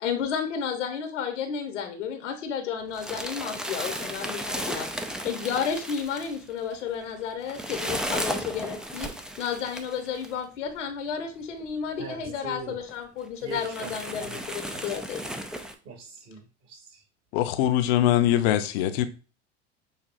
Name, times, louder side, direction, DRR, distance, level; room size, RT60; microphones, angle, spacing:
voice 1, 0.0-4.9 5.2-9.1 9.4-15.2, left 7 dB, 80° left, 1.0 m, -32 dB
sound 1, 2.9-10.3 11.2-11.3 11.6-11.7 12.4-12.5 12.9-13.0 13.5-15.7, equal, ahead, 0.3 m, -34 dB
voice 2, 12.0-12.8 13.4-14.4 14.7-14.9 15.8-17.0, right 4 dB, 50° right, 2.3 m, -42 dB
voice 3, 17.3-19.1, left 12 dB, 60° left, 0.7 m, -22 dB
6.5 x 2.7 x 2.5 m
hypercardioid pair, 85°, 35 cm